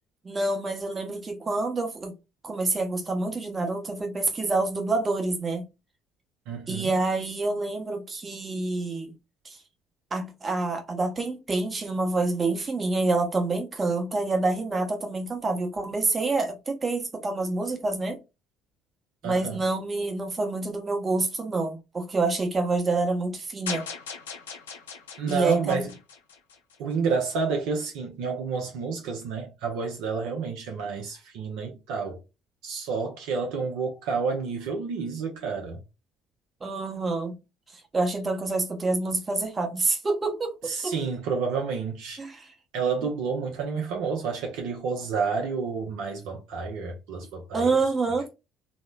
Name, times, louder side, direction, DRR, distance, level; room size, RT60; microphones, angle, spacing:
voice 1, 0.2-2.1 2.4-5.6 6.7-9.1 9.4-9.6 10.1-18.2 19.2-23.9 25.3-25.8 36.6-37.4 37.7-40.5 40.8-40.9 42.2-42.5 47.5-48.3, right 3 dB, 30° right, 0.9 m, -27 dB
voice 2, 6.5-6.9 19.2-19.6 25.2-25.9 26.8-32.2 32.6-35.8 40.7-42.2 42.7-47.7, right 5 dB, 70° right, 0.5 m, -30 dB
sound 1, 23.7-26.9, left 5 dB, 85° left, 0.5 m, -39 dB
3.0 x 2.0 x 2.3 m
hypercardioid pair, 55°, 0 cm